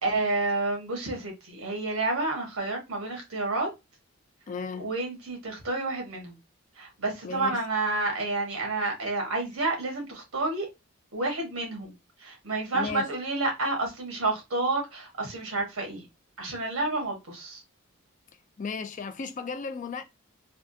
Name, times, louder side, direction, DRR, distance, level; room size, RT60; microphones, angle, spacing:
voice 1, 0.0-3.7 4.8-6.3 6.8-10.7 11.1-11.9 12.2-16.0 16.4-17.6, right 2 dB, 80° right, 1.4 m, -29 dB
voice 2, 4.5-4.9 7.2-7.6 12.7-13.1 18.6-20.0, left 5 dB, 35° left, 0.3 m, -35 dB
3.4 x 2.3 x 2.7 m
head